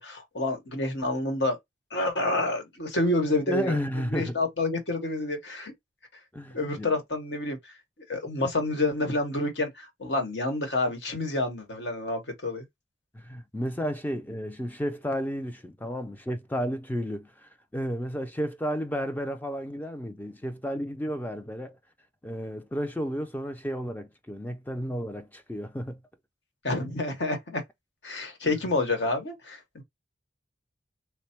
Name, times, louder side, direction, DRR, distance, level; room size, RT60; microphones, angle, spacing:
voice 1, 0.0-1.6 1.9-3.8 4.1-5.7 6.5-7.6 8.1-12.6 26.6-27.6 28.0-29.8, left 2 dB, 65° left, 1.2 m, -28 dB
voice 2, 3.5-4.4 6.3-6.9 13.1-21.8 22.2-26.0, equal, 10° left, 0.4 m, -32 dB
3.3 x 2.2 x 4.3 m
head